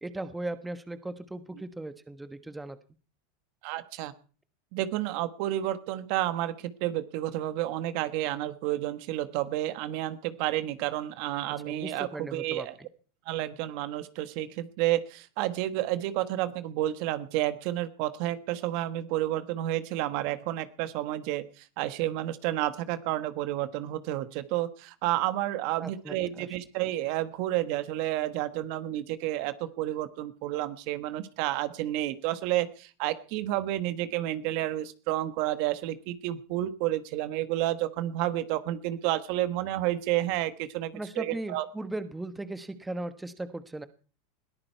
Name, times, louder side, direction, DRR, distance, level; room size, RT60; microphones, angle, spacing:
voice 1, 0.0-2.8 11.6-12.7 25.8-26.5 40.9-43.9, right 2 dB, 5° right, 12 dB, 1.2 m, -37 dB
voice 2, 3.6-4.1 4.7-12.7 13.3-41.6, right 14 dB, 55° right, 12 dB, 1.4 m, -30 dB
21.0 x 14.0 x 4.6 m, 0.38 s
supercardioid pair, 125°, 0 cm